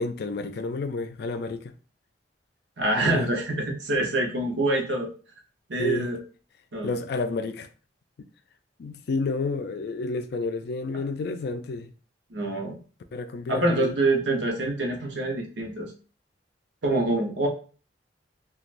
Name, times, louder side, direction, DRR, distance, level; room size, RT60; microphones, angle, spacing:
voice 1, 0.0-1.7 3.0-3.3 5.8-6.1 6.8-7.7 8.2-8.3 8.8-11.9 13.1-13.9, left 3 dB, 65° left, 0.4 m, -30 dB
voice 2, 2.8-5.1 5.7-6.2 6.7-6.9 12.3-12.8 13.5-15.9 16.8-17.5, right 2 dB, 90° right, 0.8 m, -25 dB
3.1 x 2.3 x 2.5 m
head